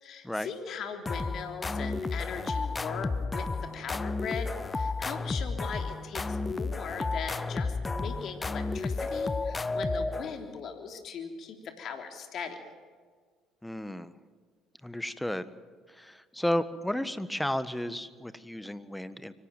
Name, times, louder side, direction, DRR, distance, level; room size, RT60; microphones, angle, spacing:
voice 1, 0.0-3.5 3.7-12.6, left 6 dB, 55° left, 5 dB, 3.4 m, -39 dB
sound 1, 1.1-10.6, left 3 dB, 25° left, 0.9 m, -32 dB
voice 2, 13.6-14.1 14.8-15.5 15.9-19.3, left 1 dB, 5° left, 14 dB, 1.5 m, -33 dB
24.5 x 17.0 x 9.2 m, 1.6 s
hypercardioid pair, 60°, 0 cm